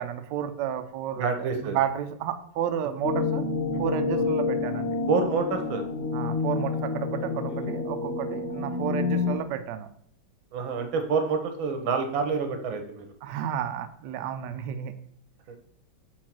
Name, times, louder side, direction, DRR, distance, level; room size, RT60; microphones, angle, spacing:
voice 1, 0.0-3.4 3.8-5.0 6.1-9.9 13.2-14.9, right 9 dB, 75° right, 9 dB, 1.1 m, -31 dB
voice 2, 1.2-1.8 5.1-5.8 7.2-7.6 10.5-13.1, right 5 dB, 90° right, 6 dB, 1.8 m, -28 dB
sound 1, 3.0-9.4, left 4 dB, 50° left, 1.0 m, -28 dB
4.6 x 4.4 x 5.9 m, 0.68 s
omnidirectional pair, 2.1 m